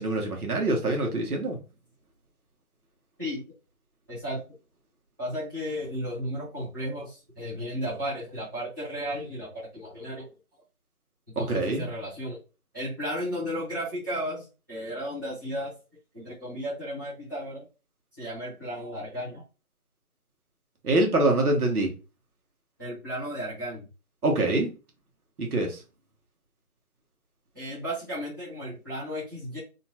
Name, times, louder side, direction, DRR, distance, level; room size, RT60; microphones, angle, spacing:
voice 1, 0.0-1.6 11.4-11.9 20.8-21.9 24.2-24.7 25.4-25.8, right 2 dB, 75° right, 1.2 m, -25 dB
voice 2, 4.1-4.4 5.2-10.3 11.4-12.4 12.7-15.7 16.1-17.7 18.2-19.4 22.8-23.9 27.5-29.6, equal, 15° right, 1.0 m, -34 dB
2.8 x 2.2 x 2.8 m
figure-of-eight pair, 170°, 44 cm